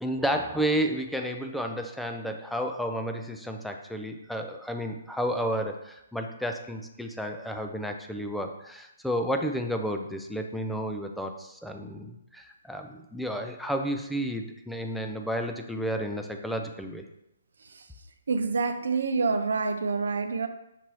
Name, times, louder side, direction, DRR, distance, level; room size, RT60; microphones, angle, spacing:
voice 1, 0.0-17.0, equal, ahead, 3 dB, 0.4 m, -31 dB
voice 2, 18.3-20.5, right 4 dB, 75° right, 9 dB, 0.4 m, -27 dB
6.0 x 2.8 x 3.0 m, 0.84 s
hypercardioid pair, 145°, 0 cm